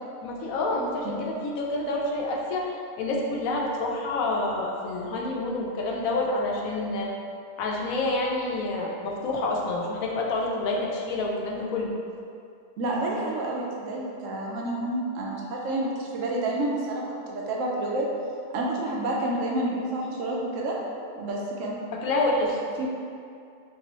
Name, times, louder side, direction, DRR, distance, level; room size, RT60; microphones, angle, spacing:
voice 1, 0.2-7.1 7.6-11.9 22.0-22.6, left 2 dB, 85° left, -1 dB, 1.0 m, -28 dB
voice 2, 12.8-18.1 18.5-20.8 21.2-21.8 22.8-22.9, right 2 dB, 70° right, -2 dB, 0.9 m, -29 dB
3.6 x 2.7 x 2.9 m, 2.4 s
omnidirectional pair, 1.4 m